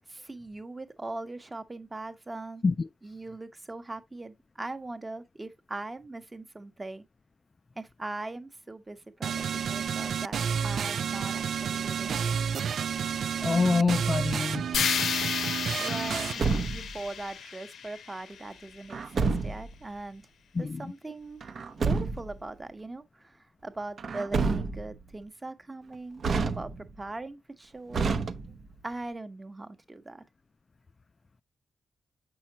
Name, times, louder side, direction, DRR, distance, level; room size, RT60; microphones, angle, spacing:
voice 1, 0.1-2.6 3.0-7.1 7.8-10.4 10.6-12.2 15.3-16.3 16.6-20.3 20.6-21.4 21.8-28.1 28.8-30.2, right 2 dB, 20° right, 0.9 m, -40 dB
sound 1, 9.2-16.3, right 7 dB, 70° right, 0.3 m, -30 dB
voice 2, 13.4-14.6 20.5-20.9, left 4 dB, 30° left, 0.3 m, -26 dB
sound 2, 14.7-18.8, left 7 dB, 85° left, 0.8 m, -32 dB
Truck, 16.1-17.1 18.9-19.7 21.4-22.4 24.0-25.0 26.2-27.0 27.9-28.8, right 4 dB, 50° right, 0.8 m, -29 dB
7.4 x 5.7 x 2.8 m
wide cardioid pair, 140°, 0 cm